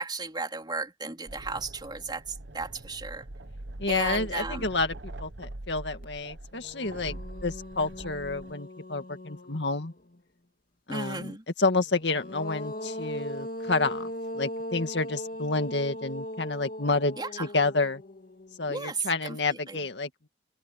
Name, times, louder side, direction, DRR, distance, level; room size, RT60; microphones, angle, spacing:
voice 1, 0.0-3.2 3.9-4.7 10.9-11.4 17.2-17.5 18.7-19.8, right 3 dB, 25° right, 3.9 m, -35 dB
sound 1, 1.3-8.5, right 1 dB, 75° right, 1.3 m, -43 dB
voice 2, 3.8-9.9 10.9-18.0 18.6-20.3, left 3 dB, 70° left, 2.2 m, -29 dB
sound 2, 6.0-6.1 6.5-10.2 11.8-19.1, left 1 dB, 55° left, 2.2 m, -39 dB
open air
head